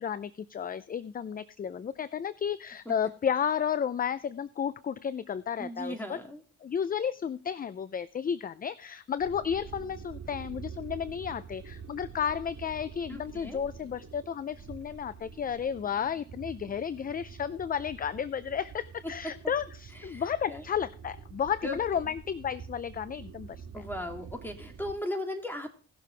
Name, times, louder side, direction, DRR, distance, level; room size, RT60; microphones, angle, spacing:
voice 1, 0.0-6.2 6.6-23.8, left 8 dB, 30° left, 16 dB, 0.5 m, -32 dB
voice 2, 5.6-6.4 13.1-13.6 20.0-20.6 21.6-22.0 23.7-25.7, left 1 dB, 5° left, 3 dB, 2.8 m, -37 dB
sound 1, 9.2-24.9, right 6 dB, 55° right, 2.8 m, -47 dB
17.5 x 6.8 x 3.3 m, 0.40 s
cardioid pair, 90°, 30 cm